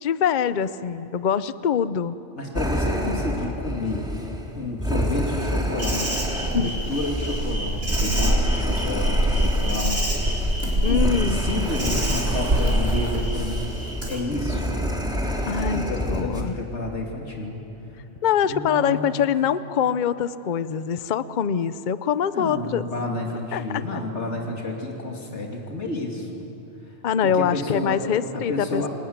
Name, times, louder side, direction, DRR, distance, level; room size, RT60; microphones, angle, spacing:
voice 1, 0.0-2.2 6.5-6.8 10.8-11.4 15.5-16.6 18.2-22.9 23.5-23.8 27.0-28.9, left 8 dB, 45° left, 14 dB, 0.7 m, -24 dB
voice 2, 2.3-4.1 4.6-6.1 6.4-10.4 10.9-13.7 14.1-14.8 15.6-17.6 18.4-19.1 22.3-26.5 27.2-28.9, left 2 dB, 70° left, 0 dB, 3.2 m, -30 dB
sound 1, 2.6-16.4, equal, 5° right, 2.8 m, -29 dB
Insect, 5.8-14.2, equal, 90° right, 4.9 m, -25 dB
29.0 x 20.5 x 9.5 m, 2.9 s
omnidirectional pair, 1.2 m